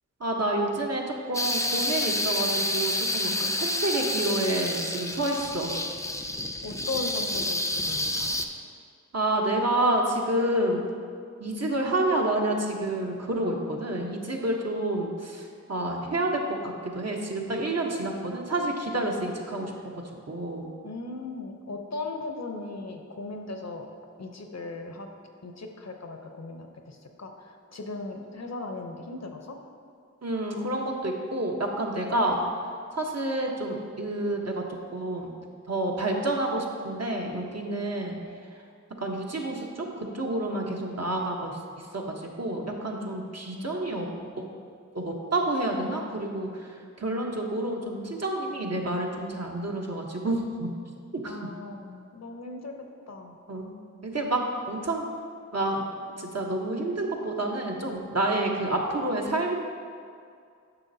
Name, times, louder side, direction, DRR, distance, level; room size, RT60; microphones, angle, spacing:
voice 1, 0.2-5.7 9.1-10.8 11.4-19.7 20.3-20.7 30.2-32.4 32.9-34.6 34.9-35.3 35.7-38.2 39.0-41.6 41.9-44.1 44.9-50.7 51.2-51.3 53.5-53.7 54.0-54.4 54.7-55.0 55.5-55.8 56.2-59.6, right 1 dB, 60° right, 0 dB, 1.0 m, -29 dB
sound 1, 1.3-8.5, left 1 dB, 10° left, 0.5 m, -29 dB
voice 2, 6.6-8.4 20.8-23.9 24.2-25.1 25.4-29.6 32.2-32.4 38.0-38.2 43.5-44.6 51.3-52.7 53.1-53.4 58.5-58.7, left 3 dB, 60° left, 4 dB, 0.7 m, -38 dB
9.7 x 5.9 x 2.8 m, 2.3 s
wide cardioid pair, 45°, 30 cm